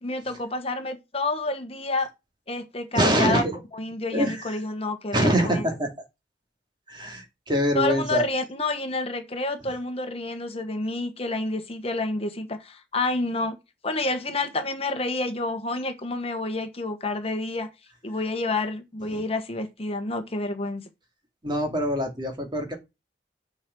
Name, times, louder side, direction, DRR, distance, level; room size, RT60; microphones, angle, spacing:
voice 1, 0.0-2.1 2.5-3.4 3.7-5.6 7.7-13.5 13.8-17.7 18.0-20.9, left 2 dB, 35° left, 1.3 m, -29 dB
voice 2, 2.9-3.6 4.1-4.6 5.1-5.9 6.9-8.3 19.1-19.2 21.4-22.8, equal, 25° right, 2.5 m, -24 dB
7.4 x 5.0 x 6.1 m
head